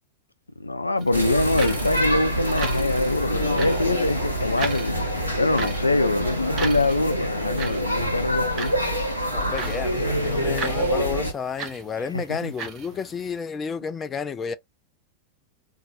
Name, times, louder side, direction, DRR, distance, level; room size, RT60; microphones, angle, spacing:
voice 1, 0.6-5.0 5.3-8.7 12.1-12.5, left 2 dB, 80° left, 0.4 m, -24 dB
sound 1, 1.0-13.4, right 5 dB, 35° right, 1.1 m, -38 dB
sound 2, 1.1-11.3, equal, 85° right, 1.3 m, -26 dB
voice 2, 9.3-14.6, left 6 dB, 20° left, 0.4 m, -31 dB
4.0 x 2.7 x 3.6 m
figure-of-eight pair, 90°, 0 cm